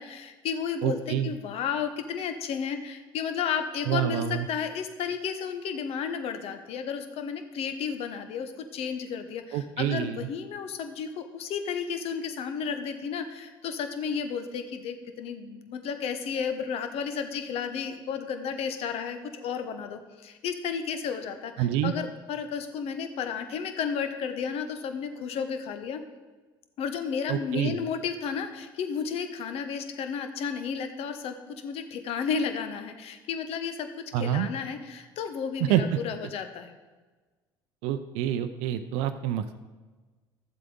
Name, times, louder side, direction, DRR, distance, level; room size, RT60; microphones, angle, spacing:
voice 1, 0.0-26.0 26.8-33.9 34.2-36.7, left 6 dB, 55° left, 8 dB, 1.0 m, -33 dB
voice 2, 0.8-1.3 3.9-4.5 9.5-10.3 21.6-21.9 27.3-27.8 34.1-34.5 35.6-36.0 37.8-39.6, right 11 dB, 70° right, 10 dB, 0.5 m, -27 dB
12.5 x 7.6 x 3.8 m, 1.3 s
hypercardioid pair, 60°, 12 cm